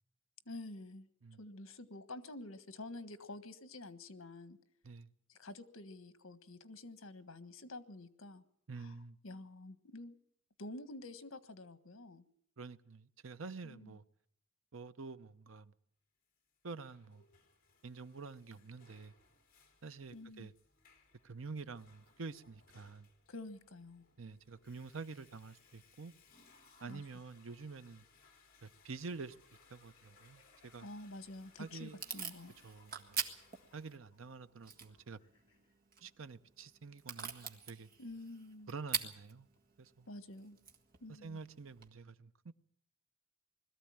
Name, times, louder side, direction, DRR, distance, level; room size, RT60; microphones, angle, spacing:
voice 1, 0.4-1.1 1.4-4.6 5.3-8.4 8.8-9.0 9.2-10.2 10.6-12.2 13.6-14.0 20.1-20.5 23.3-24.1 26.9-27.0 30.8-32.5 38.0-38.7 40.1-40.6 41.0-41.4, left 2 dB, 80° left, 1.4 m, -49 dB
voice 2, 8.7-9.2 12.6-14.0 14.7-15.7 16.6-17.2 17.8-19.1 19.8-20.5 21.2-23.1 24.2-26.1 26.8-28.0 28.6-29.4 29.7-30.9 31.6-32.0 32.6-33.2 33.7-35.2 36.0-37.9 38.7-39.5 39.8-40.1 41.2-42.5, right 4 dB, 70° right, 0.8 m, -48 dB
Water / Toilet flush, 16.5-34.0, left 4 dB, 45° left, 3.1 m, -67 dB
sound 1, 27.2-35.7, left 2 dB, 25° left, 6.1 m, -72 dB
Packing tape duct tape / Tearing, 31.1-41.9, right 6 dB, 45° right, 1.7 m, -46 dB
21.5 x 14.0 x 8.8 m
head